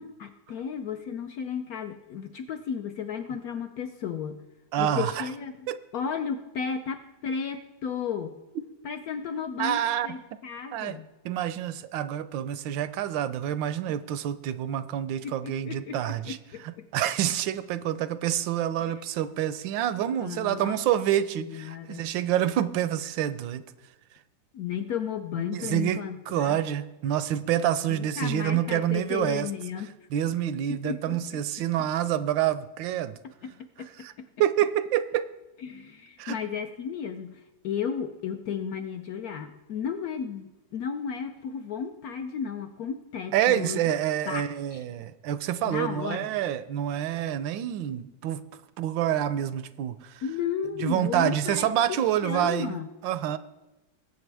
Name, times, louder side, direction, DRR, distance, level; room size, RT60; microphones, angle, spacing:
voice 1, 0.0-4.4 4.8-5.5 5.9-8.4 8.8-11.1 15.2-16.9 18.8-18.9 20.2-20.8 21.4-22.0 24.5-26.6 27.9-29.9 30.7-31.2 33.4-34.3 35.6-43.8 44.3-44.8 45.6-46.3 50.2-52.9, left 7 dB, 65° left, 7 dB, 0.9 m, -34 dB
voice 2, 4.7-5.3 5.7-5.8 9.6-10.1 10.7-11.0 11.2-16.4 16.6-23.6 25.5-29.5 30.1-33.2 34.0-34.1 34.4-35.3 36.2-36.4 43.3-48.4 48.8-50.2 50.8-52.8 53.0-53.4, right 11 dB, 80° right, 13 dB, 1.3 m, -27 dB
20.0 x 8.1 x 3.4 m, 1.0 s
omnidirectional pair, 2.1 m